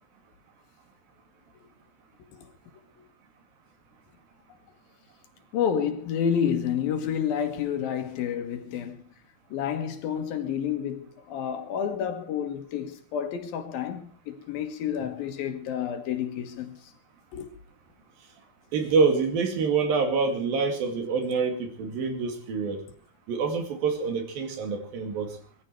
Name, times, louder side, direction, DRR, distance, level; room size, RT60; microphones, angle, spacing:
voice 1, 5.5-9.0 9.5-16.8 17.3-17.5, left 8 dB, 75° left, 3.3 m, -29 dB
voice 2, 18.7-22.8 23.3-25.4, right 4 dB, 75° right, 4.1 m, -26 dB
20.0 x 14.5 x 4.6 m
omnidirectional pair, 4.2 m